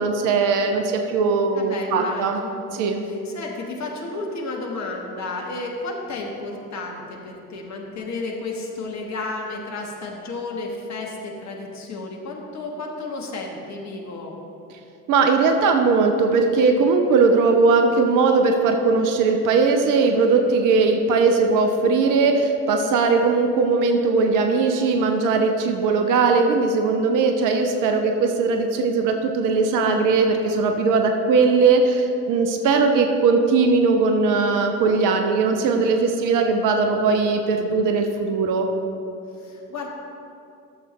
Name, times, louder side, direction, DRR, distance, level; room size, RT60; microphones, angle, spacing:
voice 1, 0.0-2.4 2.7-3.0 15.1-38.7, right 4 dB, 40° right, 5 dB, 0.8 m, -19 dB
voice 2, 1.5-14.3 39.4-39.9, left 3 dB, 35° left, 0 dB, 1.5 m, -32 dB
12.5 x 6.9 x 3.1 m, 2.7 s
figure-of-eight pair, 60°, 46 cm